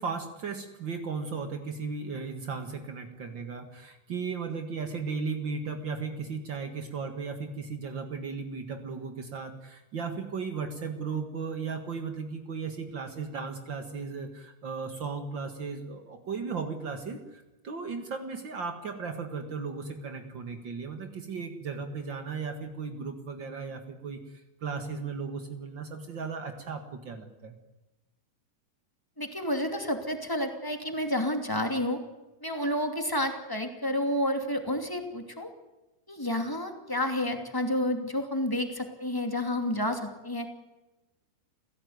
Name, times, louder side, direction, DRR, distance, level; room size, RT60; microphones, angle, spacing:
voice 1, 0.0-27.6, right 5 dB, 85° right, 6 dB, 1.0 m, -36 dB
voice 2, 29.2-32.0 32.4-35.5 36.1-40.5, left 1 dB, 10° left, 5 dB, 1.4 m, -30 dB
30.0 x 16.5 x 9.5 m, 1.1 s
omnidirectional pair, 5.2 m